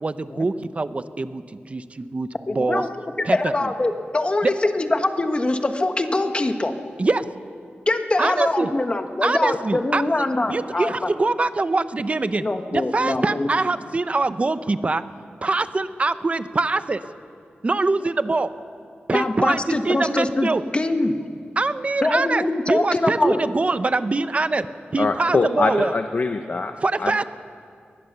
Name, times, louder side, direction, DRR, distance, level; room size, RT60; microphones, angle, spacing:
voice 1, 0.0-1.4 1.7-2.8 3.2-3.7 7.0-7.2 8.2-8.7 9.2-10.0 10.5-12.5 12.7-15.0 15.4-17.0 17.6-18.5 19.1-20.6 21.6-24.7 24.9-25.9 26.8-27.2, right 3 dB, 35° right, 12 dB, 0.8 m, -23 dB
voice 2, 2.5-2.9 3.3-6.7 7.9-11.1 12.3-13.5 19.1-21.1 22.0-23.4, left 2 dB, 30° left, 6 dB, 1.4 m, -23 dB
voice 3, 25.0-26.7 27.0-27.2, left 3 dB, 50° left, 7 dB, 0.8 m, -23 dB
22.5 x 20.0 x 6.9 m, 2.3 s
wide cardioid pair, 120°, 4 cm